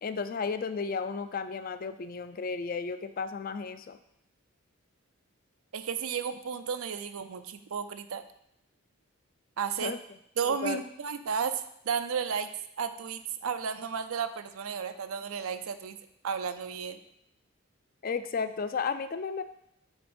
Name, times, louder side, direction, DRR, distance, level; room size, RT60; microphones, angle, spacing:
voice 1, 0.0-4.0 9.8-10.0 10.4-10.8 18.0-19.4, left 5 dB, 40° left, 11 dB, 0.4 m, -33 dB
voice 2, 5.7-8.2 9.6-9.9 10.4-12.5 12.8-16.0 16.2-17.0, right 6 dB, 80° right, 10 dB, 0.5 m, -33 dB
8.0 x 3.6 x 5.2 m, 0.76 s
head